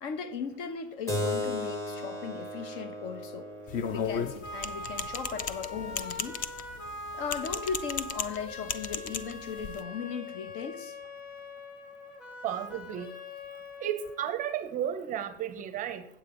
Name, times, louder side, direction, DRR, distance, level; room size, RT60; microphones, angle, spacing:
voice 1, 0.0-3.5 3.9-6.4 7.1-11.0, left 6 dB, 60° left, 1.0 m, -37 dB
Keyboard (musical), 1.1-6.2, left 1 dB, 10° left, 0.9 m, -37 dB
sound 1, 3.7-9.8, left 7 dB, 30° left, 0.5 m, -35 dB
sound 2, 3.8-14.8, left 2 dB, 80° left, 1.9 m, -43 dB
voice 2, 12.4-13.1 13.8-16.0, right 10 dB, 25° right, 0.6 m, -33 dB
8.7 x 8.2 x 3.7 m
supercardioid pair, 140°, 30 cm